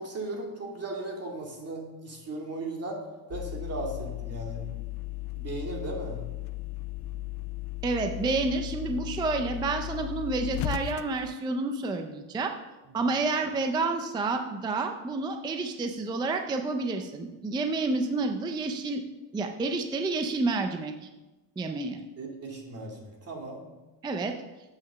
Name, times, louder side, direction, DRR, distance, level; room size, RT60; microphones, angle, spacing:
voice 1, 0.0-3.0 3.3-4.6 5.4-6.2 13.0-13.1 22.2-23.6, right 2 dB, 30° right, 0 dB, 2.3 m, -37 dB
sound 1, 3.3-11.4, left 18 dB, 55° left, 0.5 m, -36 dB
voice 2, 7.8-12.5 12.9-19.0 19.3-20.9 21.6-22.0 24.0-24.3, right 3 dB, 10° right, 5 dB, 0.4 m, -29 dB
8.2 x 6.0 x 6.8 m, 1.1 s
cardioid pair, 145°, 49 cm